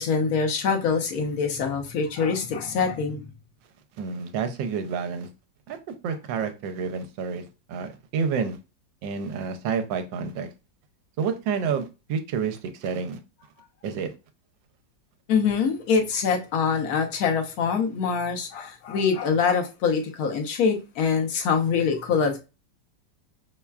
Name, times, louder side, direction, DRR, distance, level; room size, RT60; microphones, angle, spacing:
voice 1, 0.0-3.3 15.3-22.4, left 5 dB, 60° left, 1.1 m, -24 dB
voice 2, 4.0-5.3 5.7-5.8 6.0-8.6 9.0-10.5 11.2-13.2 13.8-14.1, right 6 dB, 80° right, 1.3 m, -29 dB
5.6 x 2.2 x 2.3 m
omnidirectional pair, 2.0 m